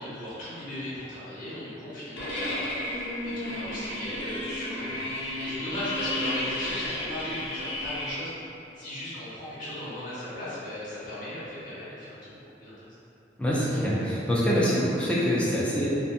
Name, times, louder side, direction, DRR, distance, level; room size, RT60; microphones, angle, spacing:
voice 1, 0.0-8.3 8.7-12.9, left 1 dB, 45° left, -12 dB, 1.1 m, -37 dB
sound 1, 2.2-8.2, left 1 dB, 80° left, 0.6 m, -32 dB
voice 2, 13.4-15.9, equal, 5° left, -8 dB, 0.4 m, -25 dB
2.7 x 2.2 x 2.5 m, 2.8 s
head